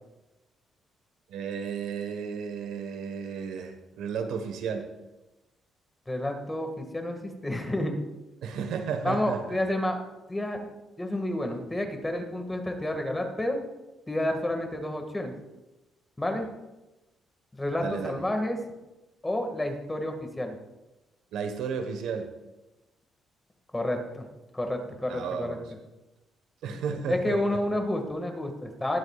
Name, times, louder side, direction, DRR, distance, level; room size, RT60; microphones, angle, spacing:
voice 1, 1.3-4.9 8.4-9.6 17.8-18.2 21.3-22.3 25.1-25.6 26.6-27.6, right 6 dB, 85° right, 7 dB, 1.3 m, -33 dB
voice 2, 6.1-8.0 9.0-10.0 10.3-10.7 11.0-13.6 14.1-15.3 16.2-16.5 17.5-18.6 19.2-20.6 23.7-24.3 24.5-25.6 26.7-29.0, left 1 dB, 15° left, 4 dB, 1.9 m, -30 dB
21.5 x 8.2 x 2.4 m, 1.0 s
cardioid pair, 90°, 0 cm